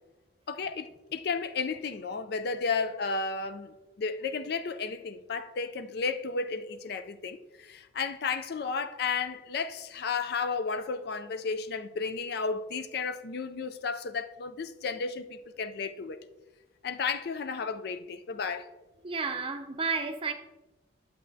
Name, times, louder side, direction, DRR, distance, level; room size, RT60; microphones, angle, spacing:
voice 1, 0.5-16.2 16.8-18.7, left 5 dB, 55° left, 0.4 m, -33 dB
voice 2, 19.0-20.3, right 4 dB, 30° right, 0.6 m, -31 dB
10.5 x 7.6 x 2.7 m
head